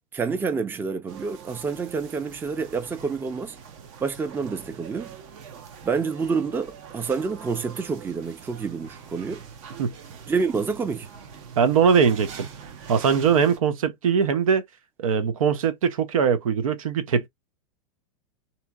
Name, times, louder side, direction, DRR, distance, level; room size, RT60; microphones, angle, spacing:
voice 1, 0.1-3.6 4.0-5.2 5.8-9.4 10.3-11.1, right 5 dB, 10° right, 0.4 m, -28 dB
sound 1, 1.1-13.6, right 7 dB, 55° right, 0.8 m, -44 dB
voice 2, 11.6-12.5 12.9-14.6 15.0-17.3, right 6 dB, 85° right, 0.6 m, -21 dB
2.8 x 2.7 x 2.2 m
hypercardioid pair, 120°, 17 cm